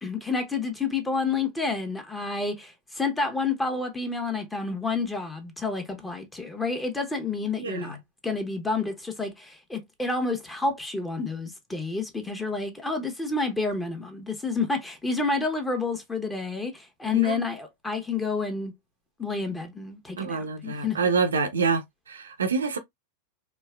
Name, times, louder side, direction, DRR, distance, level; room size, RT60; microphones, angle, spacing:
voice 1, 0.0-8.0 8.2-18.7 19.2-21.0, left 4 dB, 10° left, 1.1 m, -29 dB
voice 2, 7.6-7.9 17.1-17.4 20.2-21.8 22.1-22.8, right 5 dB, 70° right, 0.6 m, -26 dB
4.5 x 2.9 x 2.2 m
figure-of-eight pair, 90°, 0 cm